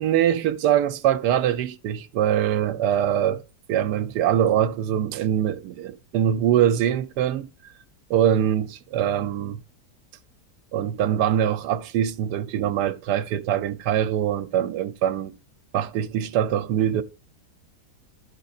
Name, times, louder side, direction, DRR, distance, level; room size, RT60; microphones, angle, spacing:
voice 1, 0.0-3.4 3.7-7.5 8.1-9.6 10.7-15.3 15.7-17.0, right 10 dB, 80° right, 1.2 m, -23 dB
11.5 x 5.3 x 2.4 m
omnidirectional pair, 1.8 m